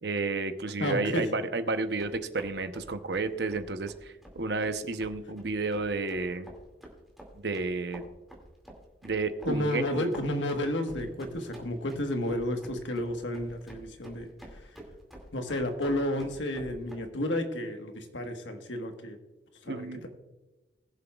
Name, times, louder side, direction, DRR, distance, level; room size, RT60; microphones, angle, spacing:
voice 1, 0.0-6.5 7.3-8.0 9.0-10.1 19.7-20.0, right 3 dB, 65° right, 9 dB, 0.8 m, -31 dB
voice 2, 0.8-1.3 9.5-14.3 15.3-19.2 19.6-20.1, left 1 dB, 90° left, 5 dB, 1.4 m, -31 dB
sound 1, 1.8-17.0, equal, ahead, 2.3 m, -49 dB
20.5 x 7.3 x 2.4 m, 1.1 s
head